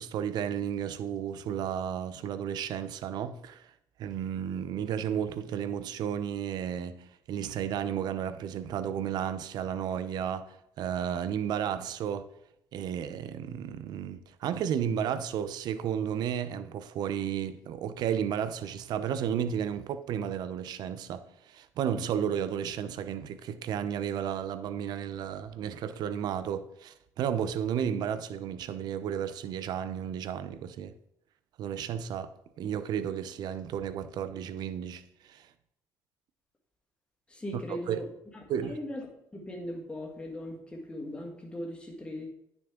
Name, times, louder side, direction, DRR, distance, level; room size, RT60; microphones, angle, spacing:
voice 1, 0.0-3.7 4.0-12.2 12.7-30.9 31.6-35.5 37.7-38.0 38.5-38.8, right 9 dB, 65° right, 0.6 m, -33 dB
voice 2, 37.3-38.1 38.6-39.0 39.3-42.3, left 1 dB, 15° left, 1.7 m, -39 dB
10.0 x 6.1 x 3.7 m
cardioid pair, 95°, 8 cm